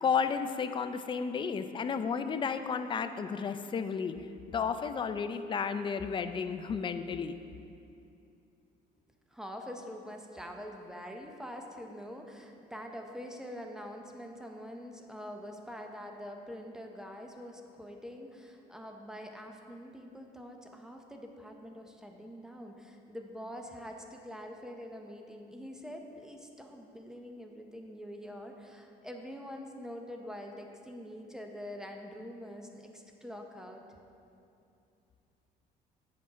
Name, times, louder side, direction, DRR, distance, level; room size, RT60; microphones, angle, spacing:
voice 1, 0.0-4.1 4.5-7.4, left 6 dB, 30° left, 9 dB, 0.4 m, -32 dB
voice 2, 9.3-33.8, equal, 5° right, 3 dB, 0.8 m, -45 dB
8.6 x 5.6 x 4.8 m, 2.6 s
cardioid pair, 110°, 17 cm